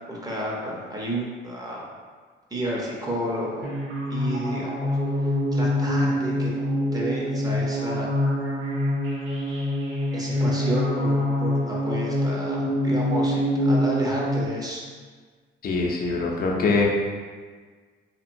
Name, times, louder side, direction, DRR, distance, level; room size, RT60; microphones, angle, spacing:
voice 1, 0.1-1.8 2.5-3.7 4.1-8.1 10.1-14.8, equal, 20° right, -4 dB, 0.7 m, -31 dB
sound 1, 3.6-14.5, left 1 dB, 90° right, 0.7 m, -25 dB
voice 2, 15.6-16.9, left 3 dB, 50° left, -1 dB, 0.6 m, -23 dB
2.9 x 2.7 x 2.6 m, 1.5 s
cardioid pair, 90°, 20 cm